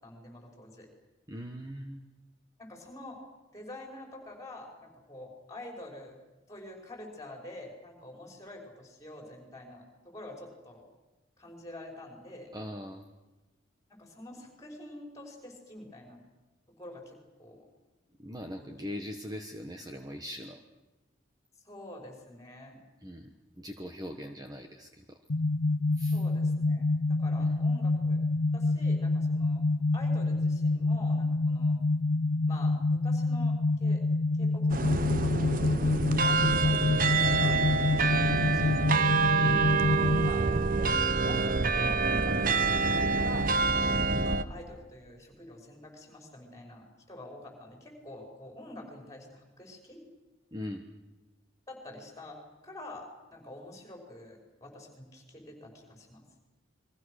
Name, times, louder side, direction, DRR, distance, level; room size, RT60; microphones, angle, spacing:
voice 1, 0.0-0.9 2.6-3.2 3.5-6.2 6.5-10.8 11.4-12.5 13.9-16.2 16.8-17.6 18.6-18.7 21.6-22.8 26.1-28.2 28.5-29.6 29.9-31.8 32.5-34.0 34.4-35.9 36.2-38.6 38.9-39.1 40.2-40.5 40.8-43.5 44.2-50.0 51.7-56.2, left 1 dB, 15° left, 2 dB, 5.7 m, -47 dB
voice 2, 1.3-2.0 12.5-13.1 18.2-20.6 23.0-25.0 26.0-26.2 27.4-27.5 39.4-39.8 50.5-50.9, left 1 dB, 20° right, 4 dB, 1.3 m, -41 dB
sound 1, 25.3-40.3, left 2 dB, 75° left, 0.8 m, -27 dB
sound 2, 34.7-44.4, right 4 dB, 45° right, 1.0 m, -27 dB
30.0 x 22.5 x 6.6 m, 1.1 s
head